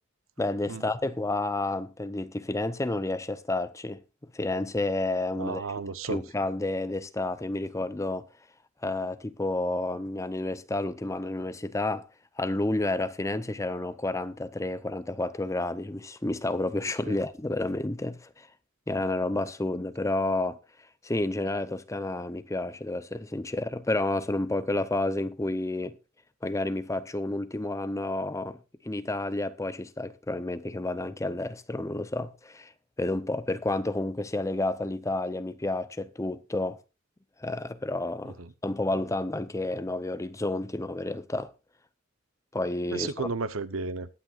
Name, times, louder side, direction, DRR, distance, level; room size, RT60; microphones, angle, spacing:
voice 1, 0.4-5.6 6.0-8.3 8.8-12.0 12.4-18.5 18.9-20.6 21.0-26.0 26.4-28.6 28.8-32.7 33.0-36.8 37.4-38.4 38.6-41.5 42.5-43.3, left 2 dB, 15° left, 0.6 m, -30 dB
voice 2, 5.4-6.2 17.0-17.1 38.4-38.5 42.9-44.1, right 4 dB, 85° right, 0.9 m, -33 dB
21.0 x 9.1 x 2.5 m
head